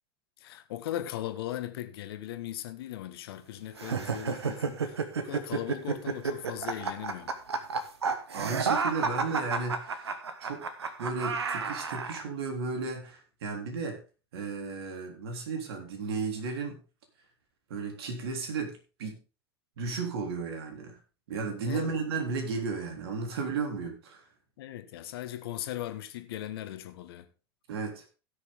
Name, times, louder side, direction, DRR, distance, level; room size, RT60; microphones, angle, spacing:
voice 1, 0.4-7.3 21.7-22.0 24.6-27.3, left 12 dB, 70° left, 1.5 m, -38 dB
sound 1, 3.8-12.2, right 5 dB, 85° right, 1.3 m, -31 dB
voice 2, 8.3-10.7 11.0-14.0 14.3-16.8 17.7-19.2 19.8-21.0 21.3-24.2 27.7-28.0, right 4 dB, 70° right, 3.6 m, -34 dB
17.0 x 6.6 x 3.7 m
hypercardioid pair, 90°, 13 cm